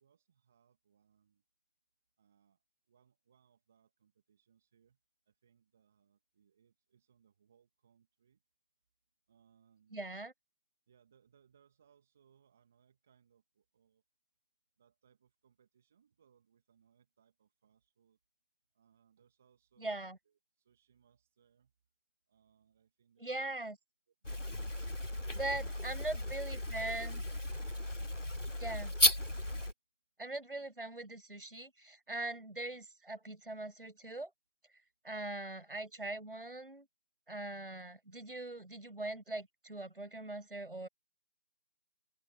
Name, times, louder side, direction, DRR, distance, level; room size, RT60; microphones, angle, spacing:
voice 1, 0.0-1.4 2.2-5.0 5.3-8.4 9.3-10.1 10.9-14.0 14.8-18.2 18.7-21.7 22.3-23.6 24.1-24.6 25.2-27.0 27.5-28.1, right 8 dB, ahead, 1.9 m, -71 dB
voice 2, 9.9-10.3 19.8-20.2 23.2-23.8 25.3-27.2 28.6-28.9 30.2-34.3 35.0-36.9 37.3-40.9, right 2 dB, 50° right, 6.4 m, -41 dB
sound 1, 24.2-29.7, left 1 dB, 80° left, 3.4 m, -34 dB
open air
figure-of-eight pair, 170°, 37 cm